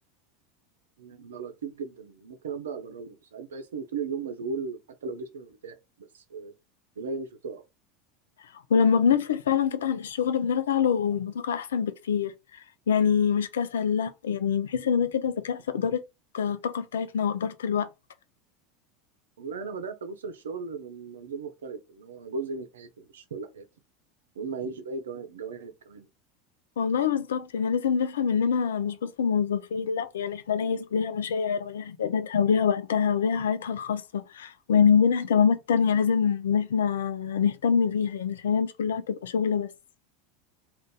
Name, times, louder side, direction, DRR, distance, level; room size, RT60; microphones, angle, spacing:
voice 1, 1.0-6.5 7.0-7.6 19.4-23.7 24.4-26.1, right 4 dB, 85° right, 0.6 m, -37 dB
voice 2, 8.7-12.3 12.9-16.0 16.3-17.9 26.8-39.7, left 7 dB, 85° left, 0.4 m, -25 dB
2.6 x 2.5 x 3.7 m
hypercardioid pair, 90°, 0 cm